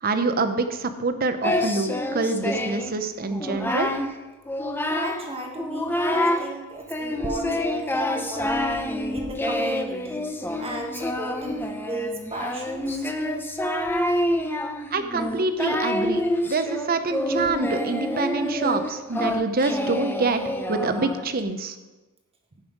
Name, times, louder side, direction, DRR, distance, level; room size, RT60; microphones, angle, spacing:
voice 1, 0.0-3.9 14.9-20.4 20.7-21.7, right 3 dB, 40° right, 9 dB, 0.7 m, -26 dB
Singing, 1.4-2.9 3.3-4.1 4.5-5.3 5.6-6.5 6.9-21.4, left 1 dB, 10° left, 0.6 m, -27 dB
voice 2, 4.9-8.7 9.1-10.3 10.6-13.1, right 1 dB, 25° right, 1 dB, 1.5 m, -35 dB
15.0 x 5.6 x 5.1 m, 1.2 s
head